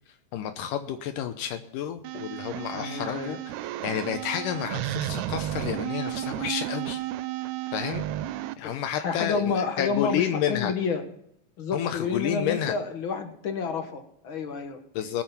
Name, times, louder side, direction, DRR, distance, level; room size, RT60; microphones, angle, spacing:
voice 1, 0.3-3.4 3.8-7.0 7.7-8.0 8.6-10.7 11.7-12.8 15.0-15.2, left 9 dB, 80° left, 8 dB, 2.3 m, -30 dB
sound 1, 2.0-8.5, right 13 dB, 75° right, 1.8 m, -33 dB
voice 2, 2.7-3.4 8.6-11.0 11.6-14.8, left 5 dB, 50° left, 6 dB, 1.6 m, -30 dB
21.0 x 7.8 x 5.6 m, 0.73 s
omnidirectional pair, 3.8 m